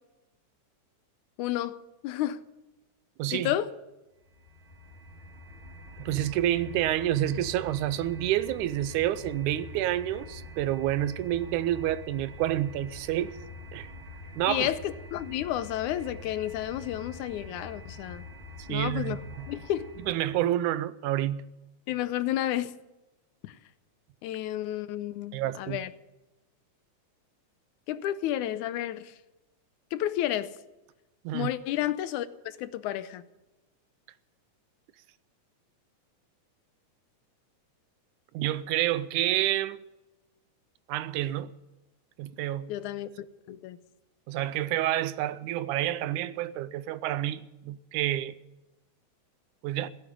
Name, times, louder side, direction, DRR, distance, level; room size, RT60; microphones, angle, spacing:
voice 1, 1.4-1.8 2.0-2.4 3.3-3.7 14.5-18.2 18.7-19.2 19.5-19.9 21.9-22.8 23.4-23.6 24.2-25.9 27.9-29.2 29.9-30.5 31.3-33.2 42.7-43.1 43.5-43.8, left 12 dB, 80° left, 2.1 m, -31 dB
voice 2, 3.2-3.5 6.0-13.4 13.7-13.9 14.4-14.7 18.7-19.5 20.1-21.5 25.3-25.8 31.3-31.5 38.3-39.8 40.9-41.5 42.2-42.7 44.3-48.4 49.6-49.9, right 13 dB, 80° right, 2.1 m, -28 dB
sound 1, 4.2-20.4, left 2 dB, 45° right, 2.7 m, -45 dB
17.0 x 8.3 x 9.9 m
omnidirectional pair, 3.6 m